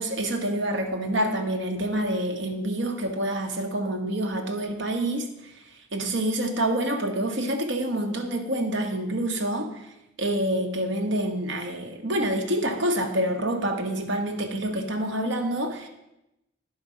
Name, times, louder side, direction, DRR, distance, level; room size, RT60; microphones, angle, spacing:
voice 1, 0.0-5.6 5.9-9.9 10.2-15.9, right 1 dB, 75° right, 4 dB, 1.3 m, -27 dB
10.5 x 5.1 x 6.4 m, 0.92 s
head